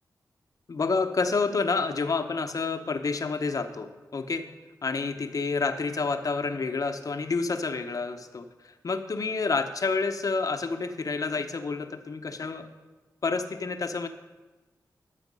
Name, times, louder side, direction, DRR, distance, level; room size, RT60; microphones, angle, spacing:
voice 1, 0.7-4.5 4.8-12.7 13.2-14.1, left 4 dB, 55° left, 8 dB, 0.8 m, -29 dB
13.5 x 5.8 x 5.4 m, 1.2 s
cardioid pair, 50°, 7 cm